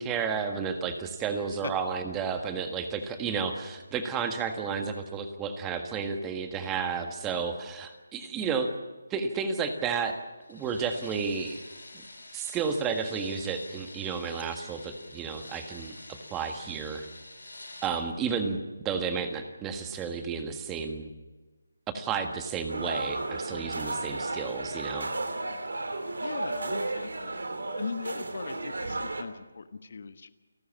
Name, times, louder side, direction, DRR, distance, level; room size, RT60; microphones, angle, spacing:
voice 1, 0.0-8.7 9.1-10.2 10.5-11.6 11.9-12.0 12.3-17.1 17.8-18.6 18.8-21.1 21.9-25.1, right 6 dB, 15° right, 6 dB, 1.6 m, -32 dB
sound 1, 9.8-17.9, left 2 dB, 80° left, 7.5 m, -47 dB
sound 2, 22.7-29.2, right 2 dB, 70° right, 2.8 m, -33 dB
voice 2, 26.2-27.4 27.8-30.3, left 5 dB, 55° left, 11 dB, 1.2 m, -39 dB
29.5 x 12.5 x 7.4 m, 1.2 s
figure-of-eight pair, 155°, 0 cm